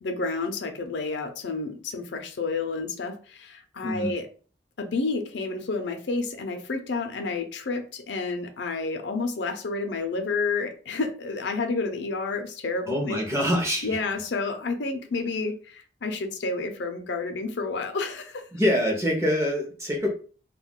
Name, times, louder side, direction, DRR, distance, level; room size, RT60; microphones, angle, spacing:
voice 1, 0.0-4.3 4.8-13.2 13.8-18.4, left 3 dB, 75° left, 6 dB, 0.5 m, -30 dB
voice 2, 12.9-14.0 18.5-20.1, equal, 15° right, 0 dB, 0.6 m, -25 dB
2.3 x 2.1 x 3.6 m, 0.40 s
head